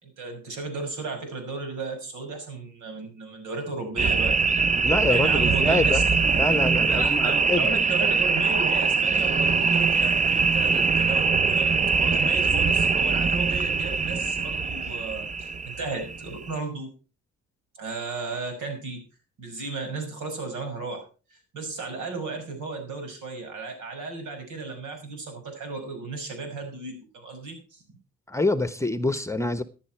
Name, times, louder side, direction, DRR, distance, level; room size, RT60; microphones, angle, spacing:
voice 1, 0.0-4.4 5.1-6.0 6.9-16.9 17.8-19.0 19.4-28.0, right 3 dB, 80° right, 6.0 m, -34 dB
sound 1, 4.0-16.6, right 4 dB, 25° right, 0.7 m, -23 dB
voice 2, 4.8-6.0 6.4-7.7 28.3-29.6, left 2 dB, 10° left, 1.0 m, -25 dB
14.5 x 10.5 x 4.5 m
cardioid pair, 90°, 30 cm